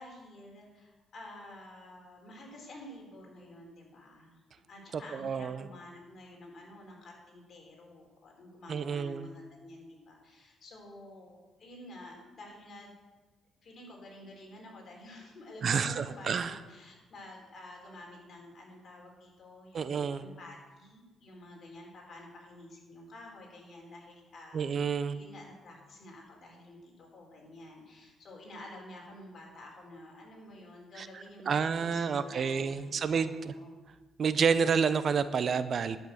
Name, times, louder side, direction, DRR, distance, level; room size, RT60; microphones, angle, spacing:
voice 1, 0.0-4.4 4.7-12.9 13.6-33.7, left 1 dB, 50° left, -1 dB, 4.3 m, -50 dB
voice 2, 5.1-5.6 8.7-9.3 15.6-16.6 19.7-20.2 24.5-25.2 31.0-31.1 31.5-33.5 34.2-36.0, right 6 dB, 50° right, 13 dB, 0.6 m, -29 dB
11.0 x 6.6 x 7.9 m, 1.2 s
cardioid pair, 90°, 0 cm